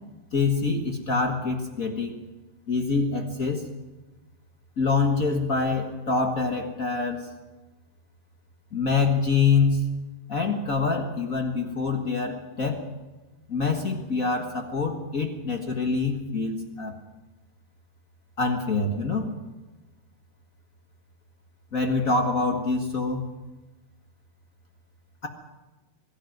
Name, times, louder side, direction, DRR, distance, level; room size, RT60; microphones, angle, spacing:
voice 1, 0.3-2.2 2.7-3.6 4.8-7.3 8.7-9.9 10.3-12.9 13.5-16.9 18.4-19.3 21.7-23.2, left 4 dB, 45° left, 4 dB, 1.0 m, -25 dB
22.5 x 13.0 x 9.3 m, 1.2 s
omnidirectional pair, 4.0 m